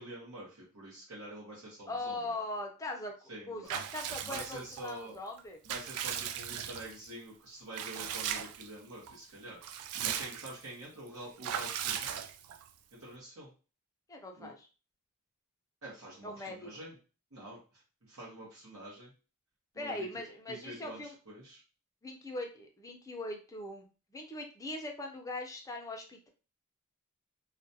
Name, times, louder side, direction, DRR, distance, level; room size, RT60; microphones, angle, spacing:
voice 1, 0.0-2.2 3.3-3.7 4.2-5.2 5.7-9.6 10.0-12.3 12.9-13.5 14.4-14.5 15.8-16.9 17.3-17.6 18.1-19.1 19.7-20.1 20.5-21.6, right 1 dB, 70° right, -6 dB, 0.9 m, -47 dB
voice 2, 1.9-3.1 3.5-5.6 14.1-14.7 16.2-16.7 19.8-21.1 22.0-23.9 24.1-26.3, left 2 dB, 15° left, 2 dB, 0.5 m, -40 dB
Water / Bathtub (filling or washing) / Liquid, 3.7-4.9 5.4-7.1 7.7-8.7 9.1-9.2 9.5-10.7 11.4-12.7, right 9 dB, 85° right, 0.3 m, -38 dB
2.4 x 2.1 x 2.6 m, 0.34 s
head